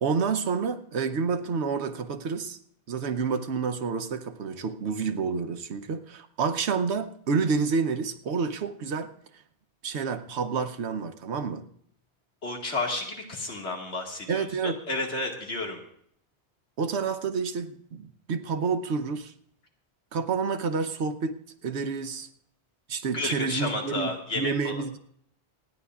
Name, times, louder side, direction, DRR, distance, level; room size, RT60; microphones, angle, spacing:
voice 1, 0.0-2.6 2.9-9.1 9.8-11.6 14.3-14.8 16.8-19.3 20.1-21.4 21.6-22.3 22.9-25.0, right 5 dB, 85° right, 9 dB, 1.1 m, -29 dB
voice 2, 12.4-15.8 23.1-24.8, left 2 dB, 90° left, 1 dB, 2.2 m, -32 dB
27.0 x 9.8 x 2.4 m, 0.66 s
omnidirectional pair, 1.1 m